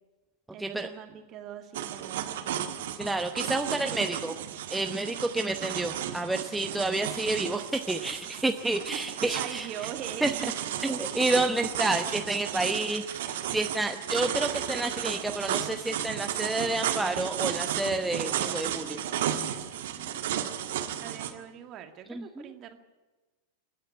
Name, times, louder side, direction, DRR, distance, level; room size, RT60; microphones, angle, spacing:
voice 1, 0.5-2.5 8.6-10.5 21.0-22.8, right 9 dB, 35° right, 6 dB, 2.1 m, -42 dB
sound 1, 1.7-21.3, right 10 dB, 55° right, 1.7 m, -33 dB
voice 2, 3.0-4.3 4.7-9.7 10.2-10.3 10.8-19.0 22.1-22.5, right 2 dB, 5° right, 5 dB, 0.9 m, -29 dB
27.5 x 10.0 x 9.9 m, 1.2 s
figure-of-eight pair, 90°, 0 cm